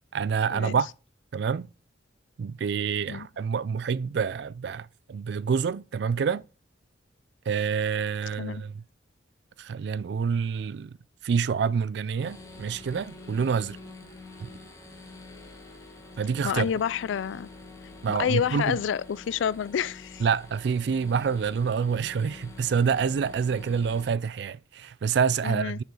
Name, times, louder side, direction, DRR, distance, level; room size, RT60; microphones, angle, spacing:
voice 1, 0.1-0.9 1.3-1.7 2.4-6.4 7.5-8.8 9.6-10.9 11.2-13.8 14.4-14.5 16.2-16.7 18.0-18.8 20.2-25.8, right 6 dB, 60° right, 0.3 m, -27 dB
sound 1, 12.2-24.1, left 3 dB, 15° left, 1.6 m, -47 dB
voice 2, 16.4-17.5 18.1-20.2 25.4-25.8, left 8 dB, 85° left, 0.3 m, -29 dB
6.8 x 6.6 x 4.8 m
head